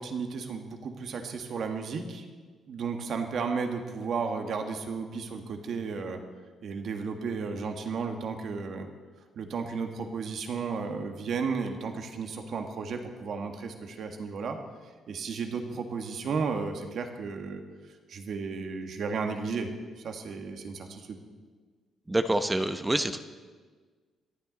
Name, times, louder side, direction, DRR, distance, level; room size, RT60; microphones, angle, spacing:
voice 1, 0.0-2.2 2.7-6.2 6.6-8.9 9.3-14.6 15.1-17.6 18.1-19.7 20.0-21.2, right 5 dB, 65° right, 5 dB, 1.7 m, -33 dB
voice 2, 22.1-23.2, right 1 dB, 15° right, 9 dB, 0.8 m, -26 dB
26.5 x 9.5 x 4.0 m, 1.5 s
cardioid pair, 90°, 0 cm